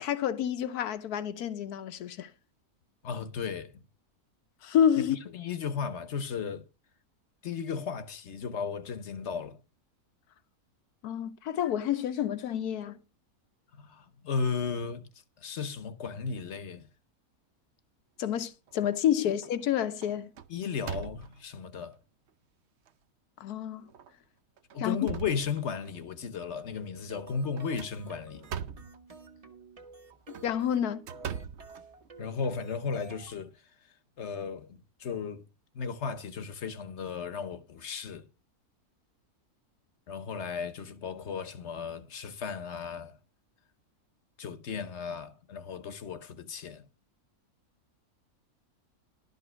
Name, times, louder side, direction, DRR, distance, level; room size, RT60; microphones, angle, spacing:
voice 1, 0.0-2.3 4.6-5.2 11.0-13.0 18.2-20.3 23.4-23.9 24.8-25.0 30.4-31.0, left 9 dB, 85° left, 1.3 m, -29 dB
voice 2, 3.0-3.8 5.0-6.7 7.4-9.6 13.8-15.1 15.4-16.9 20.5-22.0 24.7-28.4 32.2-33.5 34.2-35.4 35.7-38.3 40.1-43.2 44.4-46.8, left 6 dB, 55° left, 1.1 m, -35 dB
sound 1, 18.4-19.0 19.4-19.7 20.0-21.6 22.3-22.4 22.9-23.0 23.9-24.1 24.6-26.0 27.5-29.0 30.1-32.4, right 8 dB, 60° right, 0.8 m, -41 dB
sound 2, 26.5-33.4, right 3 dB, 25° right, 1.1 m, -51 dB
12.0 x 5.4 x 6.1 m
omnidirectional pair, 1.6 m